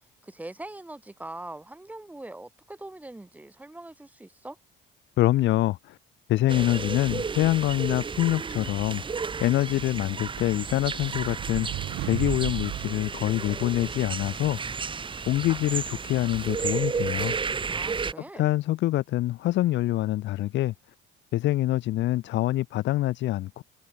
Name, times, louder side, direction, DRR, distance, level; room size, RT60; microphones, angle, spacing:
voice 1, 0.2-4.6 17.7-18.5, right 2 dB, 5° right, 3.6 m, -42 dB
voice 2, 5.2-6.0 6.3-14.6 15.3-17.3 18.4-20.7 21.3-23.6, left 15 dB, 60° left, 0.9 m, -25 dB
sound 1, 6.5-18.1, right 5 dB, 25° right, 5.3 m, -33 dB
sound 2, 10.8-14.0, right 17 dB, 75° right, 1.8 m, -36 dB
cardioid pair, 155°, 21 cm